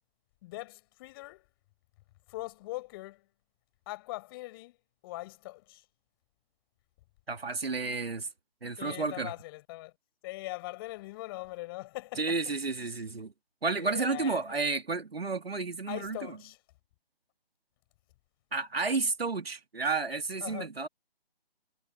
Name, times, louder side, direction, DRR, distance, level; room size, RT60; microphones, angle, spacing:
voice 1, 0.4-1.4 2.3-3.2 3.9-4.8 5.0-5.8 8.8-9.9 10.2-12.4 13.8-14.7 15.9-16.6 20.4-20.7, left 20 dB, 25° left, 6.2 m, -41 dB
voice 2, 7.3-8.3 8.6-9.3 12.2-13.3 13.6-16.4 18.5-20.9, right 4 dB, 75° right, 3.0 m, -31 dB
figure-of-eight pair, 150°, 31 cm